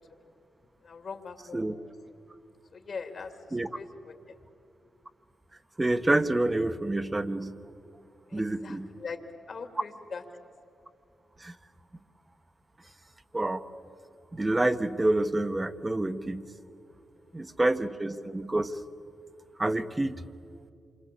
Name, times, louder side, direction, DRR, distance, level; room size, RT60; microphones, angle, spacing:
voice 1, 0.8-1.7 2.7-4.4 8.3-9.2 9.5-10.2 17.1-17.6, left 5 dB, 60° left, 5 dB, 2.9 m, -42 dB
voice 2, 5.8-7.5 8.3-8.9 11.4-11.5 13.3-13.6 14.3-16.5 17.3-18.8 19.6-20.1, right 2 dB, 25° right, 10 dB, 1.3 m, -27 dB
27.0 x 24.5 x 8.5 m, 2.5 s
supercardioid pair, 50°, 0 cm